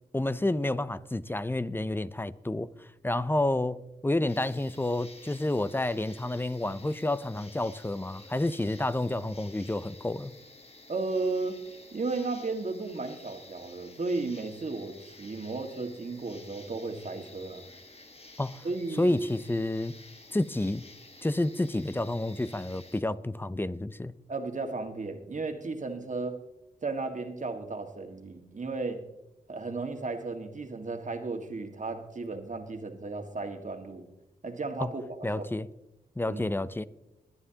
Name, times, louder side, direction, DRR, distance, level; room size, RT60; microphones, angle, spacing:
voice 1, 0.1-2.7 3.0-10.3 18.4-18.6 19.0-19.9 20.3-20.8 21.2-24.1 34.8-34.9 35.2-35.7 36.2-36.9, left 1 dB, 15° left, 0.6 m, -29 dB
sound 1, 4.3-23.0, left 2 dB, 35° left, 1.6 m, -52 dB
voice 2, 10.9-11.6 11.9-17.7 18.6-19.2 24.3-26.4 26.8-29.0 29.5-34.1 34.4-35.5 36.3-36.5, right 3 dB, 50° right, 1.7 m, -34 dB
21.5 x 9.7 x 2.9 m
supercardioid pair, 40°, 17 cm